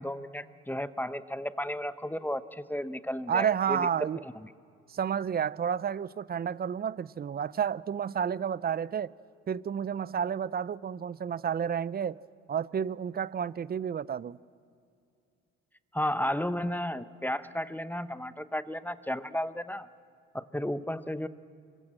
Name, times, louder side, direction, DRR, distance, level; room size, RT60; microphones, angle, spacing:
voice 1, 0.0-4.5 15.9-19.9 20.3-21.3, left 1 dB, 5° left, 0.8 m, -33 dB
voice 2, 3.3-4.2 4.9-9.1 9.5-12.2 12.5-14.4, right 8 dB, 35° right, 0.6 m, -30 dB
25.5 x 22.0 x 7.6 m
supercardioid pair, 75°, 29 cm